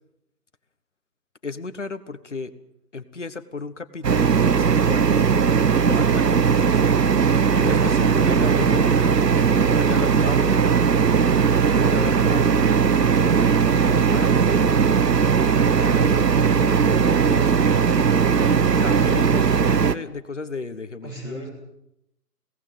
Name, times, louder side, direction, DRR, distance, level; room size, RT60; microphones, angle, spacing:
voice 1, 1.4-2.5 2.9-5.4 5.8-6.8 7.5-9.3 9.8-10.6 11.4-12.7 13.0-15.0 15.7-17.5 18.3-21.4, left 4 dB, 45° left, 12 dB, 1.4 m, -34 dB
sound 1, 4.0-19.9, right 6 dB, 90° right, 1.1 m, -18 dB
voice 2, 21.0-21.5, right 1 dB, 15° right, -5 dB, 6.8 m, -38 dB
22.0 x 18.0 x 7.8 m, 0.82 s
figure-of-eight pair, 180°, 48 cm